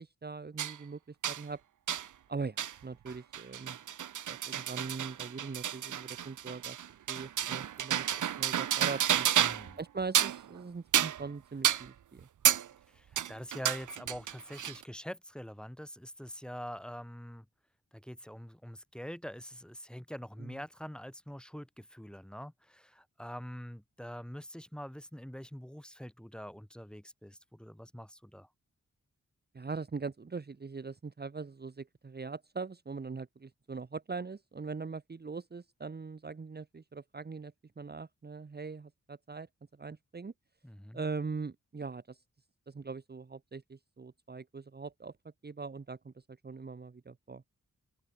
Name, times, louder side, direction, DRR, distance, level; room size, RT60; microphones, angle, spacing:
voice 1, 0.0-1.6 2.3-3.8 4.3-6.8 7.1-8.1 8.4-9.3 9.8-12.3 20.4-20.6 29.5-39.5 39.8-40.3 40.9-42.2 42.7-45.1 45.4-47.4, right 4 dB, 35° right, 1.2 m, -41 dB
sound 1, 0.6-0.8 1.2-1.4 1.9-2.1 2.6-2.7 3.1-9.7 10.0-10.4 10.9-11.3 11.6-11.9 12.4-12.7 13.2-14.8, right 10 dB, 75° right, 0.7 m, -31 dB
voice 2, 9.4-9.8 12.9-17.5 17.9-28.5 40.6-41.0, equal, 5° left, 2.5 m, -45 dB
open air
wide cardioid pair, 120°, 30 cm